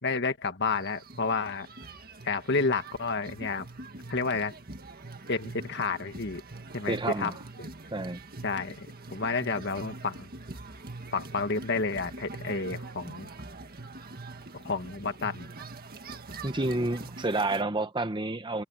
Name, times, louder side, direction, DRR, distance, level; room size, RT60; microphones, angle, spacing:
voice 1, 0.0-1.7 2.2-3.7 4.1-4.5 5.3-6.4 6.7-7.3 7.6-7.7 8.4-10.3 11.1-13.3 14.6-15.5, left 4 dB, 50° left, 1.7 m, -30 dB
sound 1, 0.6-17.6, right 2 dB, 45° right, 1.8 m, -44 dB
voice 2, 6.8-7.3 7.9-8.2 16.4-18.6, right 2 dB, 20° right, 1.1 m, -29 dB
head